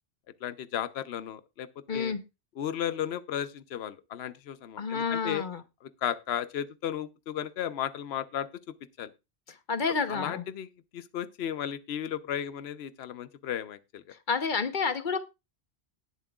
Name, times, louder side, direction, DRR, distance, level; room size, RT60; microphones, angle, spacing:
voice 1, 0.4-2.1 2.6-5.4 6.0-8.5 9.0-9.1 10.1-10.7 10.9-14.0, left 10 dB, 75° left, 0.9 m, -34 dB
voice 2, 1.9-2.2 4.8-5.6 9.5-10.4 14.3-15.2, left 5 dB, 50° left, 1.1 m, -29 dB
19.0 x 7.3 x 2.4 m
omnidirectional pair, 1.1 m